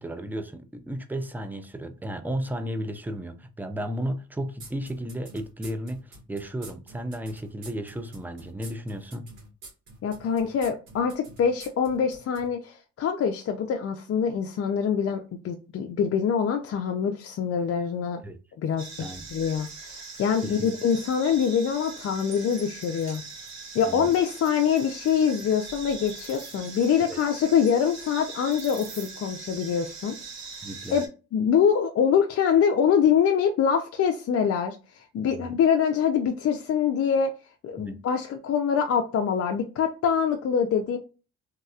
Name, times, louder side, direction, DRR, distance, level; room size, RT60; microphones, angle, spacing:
voice 1, 0.0-9.3 18.2-18.4 19.0-19.2 20.4-20.7 23.9-24.1 27.1-27.2 30.6-31.0 35.3-35.6 37.8-38.0, right 1 dB, 5° right, 0.4 m, -34 dB
sound 1, 4.6-12.5, right 2 dB, 80° right, 1.6 m, -46 dB
voice 2, 10.0-18.2 18.6-18.9 19.3-23.2 23.7-30.1 30.9-31.0 31.3-37.3 37.6-41.0, left 7 dB, 50° left, 0.5 m, -24 dB
sound 2, 18.8-31.1, right 4 dB, 60° right, 1.3 m, -42 dB
3.2 x 2.9 x 2.3 m
cardioid pair, 90°, 30 cm